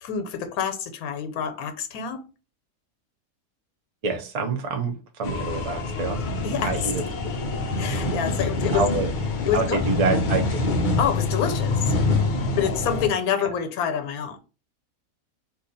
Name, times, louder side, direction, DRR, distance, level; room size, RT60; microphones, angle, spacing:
voice 1, 0.0-2.2 6.4-6.9 7.6-8.9 9.5-9.9 11.0-11.9 12.5-14.4, left 8 dB, 90° left, 1.1 m, -27 dB
voice 2, 4.0-6.2 6.6-7.0 8.7-9.1 9.5-10.6, right 3 dB, 70° right, 0.3 m, -26 dB
sound 1, 5.2-13.1, left 2 dB, 70° left, 0.4 m, -25 dB
2.7 x 2.3 x 3.9 m
omnidirectional pair, 1.5 m